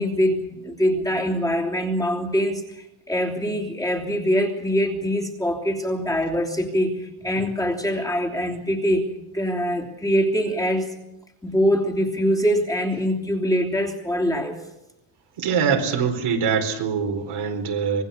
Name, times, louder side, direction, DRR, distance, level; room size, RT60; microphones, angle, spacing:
voice 1, 0.0-9.1 9.3-10.9 11.4-14.5, equal, 5° left, -1 dB, 3.1 m, -23 dB
voice 2, 15.4-18.0, right 6 dB, 80° right, 4 dB, 4.6 m, -23 dB
25.5 x 22.0 x 7.1 m, 0.91 s
wide cardioid pair, 170°, 49 cm